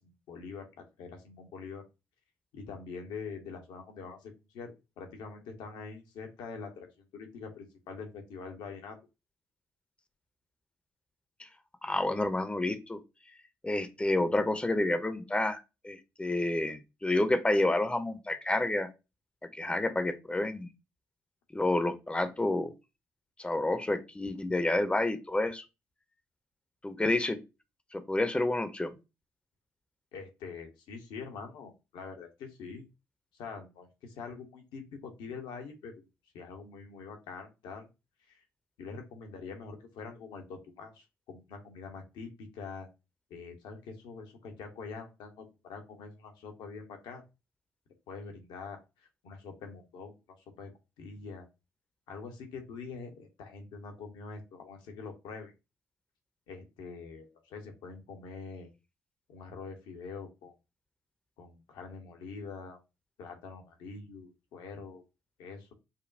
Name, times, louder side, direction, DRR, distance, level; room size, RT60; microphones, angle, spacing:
voice 1, 0.0-1.8 2.5-9.0 30.1-32.9 33.4-36.0 36.3-37.9 38.3-38.4 38.8-42.9 43.3-47.2 48.1-51.5 52.1-55.5 56.5-58.7 59.3-60.5 61.4-62.8 63.2-65.0 65.4-65.7, left 5 dB, 65° left, 0.9 m, -45 dB
voice 2, 11.8-13.0 13.6-18.9 19.4-20.7 21.5-22.7 23.4-25.6 26.8-27.4 27.9-28.9, left 2 dB, 15° left, 0.7 m, -29 dB
5.3 x 2.2 x 2.6 m
figure-of-eight pair, 45°, 8 cm